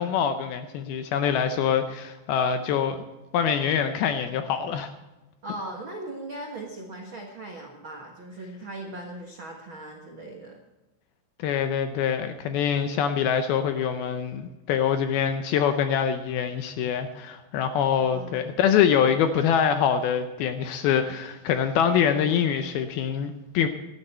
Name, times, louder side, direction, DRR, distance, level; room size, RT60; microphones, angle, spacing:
voice 1, 0.0-3.0 3.3-4.9 11.4-23.7, left 8 dB, 80° left, 8 dB, 2.3 m, -24 dB
voice 2, 5.4-10.6 18.0-18.6, right 2 dB, 85° right, 0 dB, 1.1 m, -39 dB
17.5 x 12.5 x 4.4 m, 1.0 s
omnidirectional pair, 5.0 m